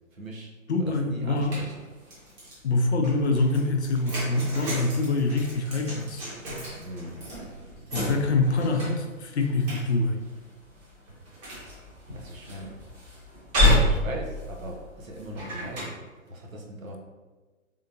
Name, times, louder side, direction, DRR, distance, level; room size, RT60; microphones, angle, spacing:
voice 1, 0.1-0.5 0.8-1.8 6.8-7.2 12.1-12.8 13.9-17.0, right 1 dB, 75° right, 0 dB, 1.0 m, -40 dB
voice 2, 0.7-1.6 2.6-6.2 7.9-10.2, left 2 dB, 55° left, 3 dB, 0.6 m, -25 dB
sound 1, 1.3-2.6 3.0-15.9, left 1 dB, 30° right, 1.4 m, -30 dB
3.7 x 3.6 x 2.6 m, 1.3 s
figure-of-eight pair, 130°, 41 cm